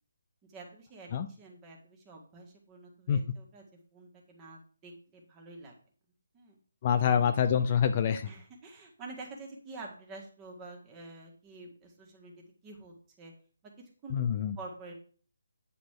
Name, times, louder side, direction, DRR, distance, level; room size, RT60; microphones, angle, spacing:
voice 1, 0.5-3.6 3.9-5.8 6.3-6.6 8.2-13.3 14.0-14.9, right 3 dB, 15° right, 0 dB, 1.9 m, -48 dB
voice 2, 6.8-8.3 14.1-14.6, left 8 dB, 25° left, 8 dB, 0.5 m, -26 dB
9.4 x 4.1 x 6.6 m, 0.43 s
hypercardioid pair, 170°, 0 cm